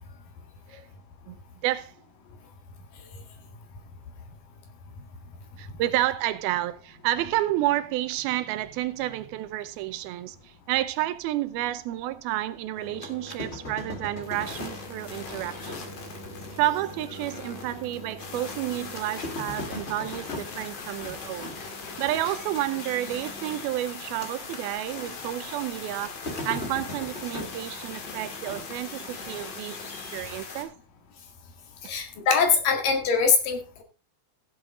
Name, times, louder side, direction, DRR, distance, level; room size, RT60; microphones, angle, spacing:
voice 1, 1.6-1.9 5.6-15.9 16.6-21.6 22.0-26.2 26.5-29.8 30.1-30.7, right 14 dB, 85° right, 2.6 m, -30 dB
sound 1, 12.7-24.7 25.0-30.2, left 1 dB, 85° left, 0.5 m, -40 dB
sound 2, 14.2-30.6, left 4 dB, 45° left, 2.7 m, -41 dB
voice 2, 31.8-33.8, left 5 dB, 65° left, 3.5 m, -23 dB
15.5 x 7.9 x 3.7 m
omnidirectional pair, 4.3 m